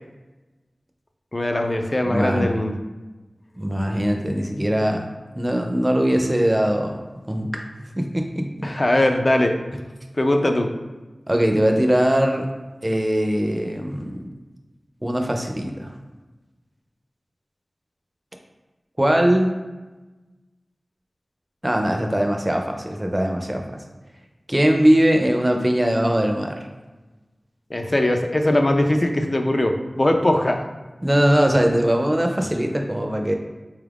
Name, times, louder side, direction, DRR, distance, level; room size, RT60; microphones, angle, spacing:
voice 1, 1.3-2.8 8.6-9.6 10.1-10.7 27.7-30.6, left 1 dB, 40° left, 5 dB, 0.4 m, -20 dB
voice 2, 2.0-2.6 3.6-5.1 5.3-7.0 7.3-7.6 8.0-8.7 11.3-12.5 12.8-14.3 15.0-15.9 19.0-19.5 21.6-23.6 24.5-26.6 31.0-33.3, equal, 20° right, 3 dB, 0.5 m, -21 dB
3.9 x 2.4 x 3.4 m, 1.2 s
wide cardioid pair, 65°, 0 cm